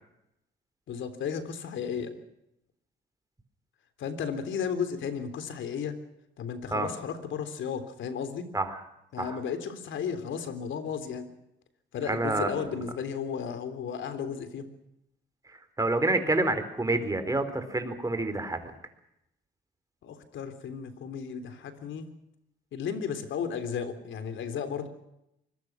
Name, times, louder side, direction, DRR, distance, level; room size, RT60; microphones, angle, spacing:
voice 1, 0.9-2.1 4.0-6.0 6.4-8.5 9.1-11.3 11.9-14.7 20.0-22.1 22.7-24.9, left 7 dB, 75° left, 10 dB, 3.6 m, -34 dB
voice 2, 12.1-12.5 15.8-18.7, right 2 dB, 15° right, 9 dB, 4.3 m, -28 dB
25.0 x 21.5 x 6.2 m, 0.84 s
cardioid pair, 90°, 20 cm